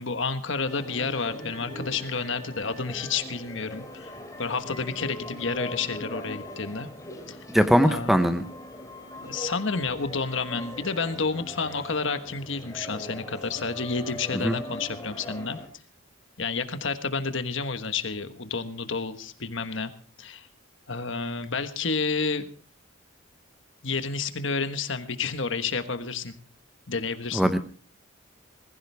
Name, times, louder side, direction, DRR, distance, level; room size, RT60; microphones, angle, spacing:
voice 1, 0.0-4.1 4.4-6.9 7.3-7.4 7.8-8.2 9.2-15.6 16.4-19.9 20.2-20.5 20.9-22.5 23.8-26.3 26.9-27.4, left 4 dB, 65° left, 9 dB, 1.3 m, -30 dB
sound 1, 0.6-15.7, left 1 dB, 15° left, 2.8 m, -41 dB
voice 2, 7.5-8.4 14.4-14.5 27.3-27.6, equal, ahead, 9 dB, 0.9 m, -20 dB
20.5 x 15.5 x 3.4 m, 0.40 s
head